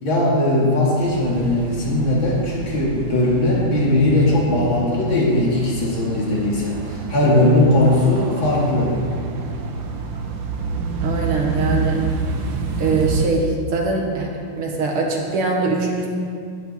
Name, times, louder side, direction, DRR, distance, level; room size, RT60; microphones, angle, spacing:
voice 1, 0.0-9.0, left 1 dB, 65° left, -5 dB, 3.1 m, -19 dB
sound 1, 1.0-13.3, right 4 dB, 70° right, 1.6 m, -28 dB
voice 2, 11.0-12.0 12.8-14.3 14.6-16.1, right 3 dB, 90° right, 0 dB, 2.4 m, -22 dB
11.0 x 10.0 x 4.3 m, 2.2 s
omnidirectional pair, 2.3 m